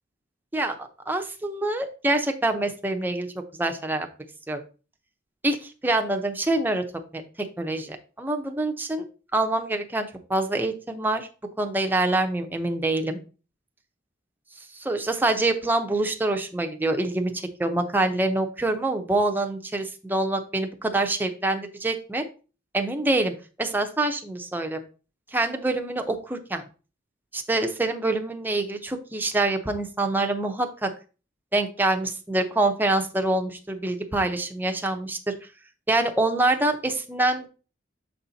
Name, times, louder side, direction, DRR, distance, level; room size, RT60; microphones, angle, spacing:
voice 1, 0.5-3.3 3.6-4.1 4.5-4.6 5.4-6.8 7.1-7.2 7.6-9.0 9.3-11.3 11.6-13.2 14.8-22.2 22.7-24.8 25.3-26.6 27.3-30.9 31.5-35.3 35.9-37.5, right 2 dB, 10° right, 4 dB, 0.7 m, -25 dB
7.1 x 4.3 x 4.0 m, 0.35 s
head